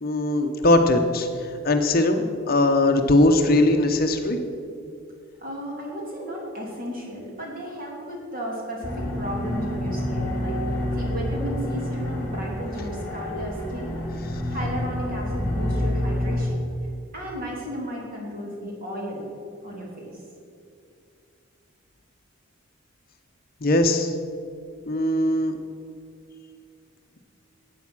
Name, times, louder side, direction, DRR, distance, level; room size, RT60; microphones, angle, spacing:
voice 1, 0.0-4.4 23.6-24.1 24.9-25.6, left 1 dB, 40° left, 6 dB, 0.8 m, -20 dB
voice 2, 5.4-14.0 14.5-16.6 17.1-19.2 19.6-20.2, equal, 40° right, -2 dB, 3.1 m, -34 dB
sound 1, 8.8-16.5, left 1 dB, 15° left, 2.6 m, -28 dB
13.0 x 8.5 x 6.1 m, 2.4 s
head